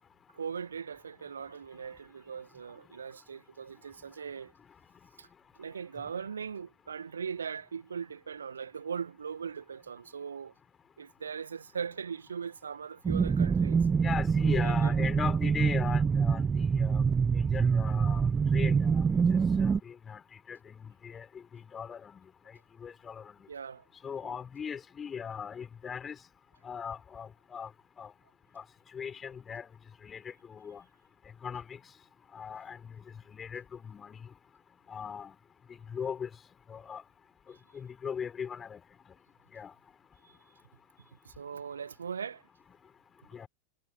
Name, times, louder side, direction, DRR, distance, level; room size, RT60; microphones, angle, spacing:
voice 1, 0.3-4.5 5.2-5.3 5.6-10.5 11.0-13.9 14.5-14.9 23.5-23.8 24.2-24.4 37.5-37.6 40.2-40.4 41.2-42.4, right 6 dB, 70° right, 1.6 m, -40 dB
sound 1, 13.0-19.8, right 6 dB, 15° right, 0.6 m, -26 dB
voice 2, 14.0-16.4 16.7-17.1 17.3-19.1 19.6-20.2 20.5-21.3 21.5-22.3 22.8-23.2 24.0-26.2 26.6-27.7 28.0-28.1 28.5-28.6 28.9-29.7 30.0-30.8 31.4-31.8 32.3-32.9 33.3-34.3 34.9-35.3 35.9-36.3 36.7-37.0 37.7-38.8 39.5-39.7 43.3-43.5, left 7 dB, 20° left, 4.7 m, -39 dB
figure-of-eight pair, 90°, 0 cm